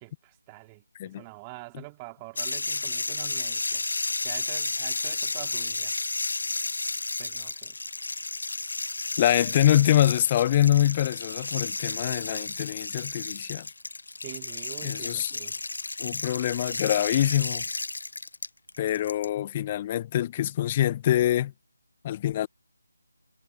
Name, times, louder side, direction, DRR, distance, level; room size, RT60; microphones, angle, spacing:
voice 1, 0.0-3.8 4.2-5.9 7.2-7.8 14.2-15.6, right 24 dB, 15° right, 2.2 m, -45 dB
sound 1, 2.4-19.3, left 3 dB, 70° left, 0.9 m, -32 dB
voice 2, 9.2-13.7 14.8-15.3 16.0-17.6 18.8-21.5 22.0-22.5, left 12 dB, 25° left, 0.3 m, -24 dB
figure-of-eight pair, 160°, 0 cm